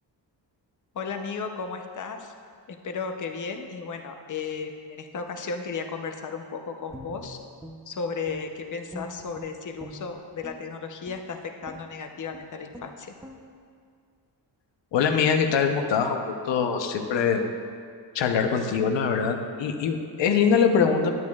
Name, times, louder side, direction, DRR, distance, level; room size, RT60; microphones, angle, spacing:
voice 1, 0.9-2.3 2.7-7.4 7.9-13.1, left 5 dB, 45° left, 5 dB, 0.7 m, -34 dB
Guitar, 6.9-8.6 8.9-10.6 11.0-11.3 11.6-11.9 12.3-12.4 12.7-12.9 13.2-13.4, equal, 5° right, 0.6 m, -43 dB
voice 2, 14.9-17.4 18.1-21.1, left 6 dB, 85° left, 5 dB, 0.8 m, -23 dB
12.0 x 8.5 x 2.4 m, 2.2 s
wide cardioid pair, 125°, 43 cm